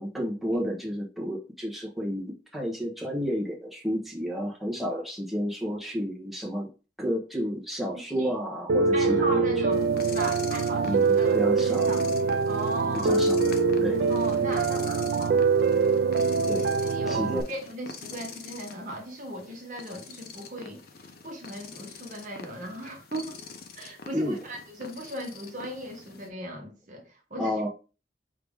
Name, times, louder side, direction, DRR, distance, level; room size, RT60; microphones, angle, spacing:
voice 1, 0.0-6.7 7.0-9.4 10.7-11.9 12.9-13.5 13.8-14.1 16.5-16.8 17.1-17.4 24.1-24.4 27.4-27.7, equal, ahead, 1.1 m, -31 dB
Piano, 8.7-17.4, right 4 dB, 65° right, 0.3 m, -24 dB
voice 2, 8.9-12.0 12.5-13.2 14.1-15.6 16.4-20.8 21.2-23.4 23.8-27.6, right 1 dB, 45° right, 1.1 m, -37 dB
sound 1, 9.7-26.3, left 4 dB, 60° left, 0.6 m, -44 dB
4.8 x 2.9 x 3.6 m
head